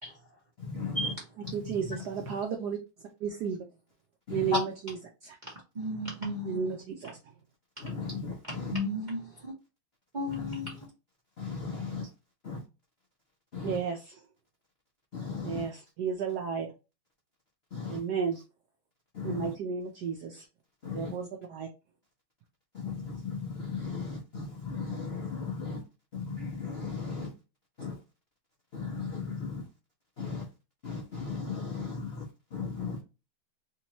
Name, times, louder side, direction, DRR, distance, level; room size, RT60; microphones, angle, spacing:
voice 1, 0.6-1.1 1.4-2.4 4.3-4.6 7.8-8.8 10.3-10.9 11.4-12.1 12.4-12.6 13.5-13.8 15.1-15.7 17.7-18.0 19.1-19.5 20.8-21.2 22.7-25.8 26.1-27.3 27.8-28.0 28.7-29.7 30.2-30.5 30.8-33.0, left 4 dB, 80° left, 0.5 m, -36 dB
voice 2, 1.5-2.8 3.2-3.6 4.3-4.9 5.2-5.4 6.4-7.2 13.6-14.0 15.4-16.7 17.9-18.4 19.2-20.5 20.9-21.7, right 6 dB, 75° right, 0.9 m, -33 dB
voice 3, 5.4-6.7 8.7-9.5 10.1-10.7, left 1 dB, 50° right, 0.5 m, -35 dB
3.5 x 2.9 x 2.9 m
omnidirectional pair, 2.3 m